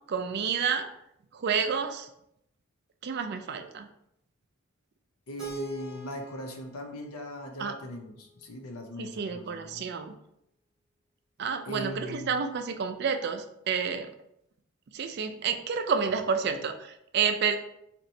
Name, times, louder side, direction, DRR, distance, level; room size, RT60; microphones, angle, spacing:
voice 1, 0.1-0.9 1.3-2.1 3.0-3.9 7.6-7.7 9.0-10.1 11.4-14.1 14.9-17.6, right 6 dB, 50° right, 7 dB, 0.3 m, -29 dB
voice 2, 5.3-9.9 11.7-12.4, equal, 90° left, 3 dB, 0.7 m, -40 dB
Keyboard (musical), 5.4-8.3, equal, 5° right, 1.3 m, -43 dB
4.2 x 2.9 x 2.6 m, 0.78 s
head